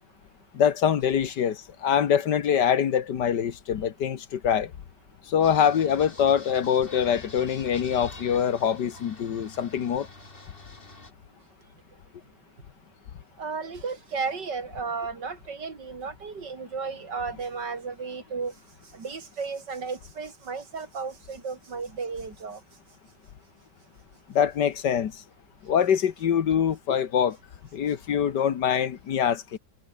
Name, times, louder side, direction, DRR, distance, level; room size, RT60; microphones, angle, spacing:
voice 1, 0.5-4.7 5.3-10.1 24.3-25.1 25.6-27.4 27.7-29.6, left 8 dB, 65° left, 1.8 m, -24 dB
sound 1, 5.4-11.1, left 3 dB, 30° left, 3.0 m, -45 dB
voice 2, 13.4-18.5 18.9-22.6, right 5 dB, 70° right, 3.4 m, -34 dB
omnidirectional pair, 2.0 m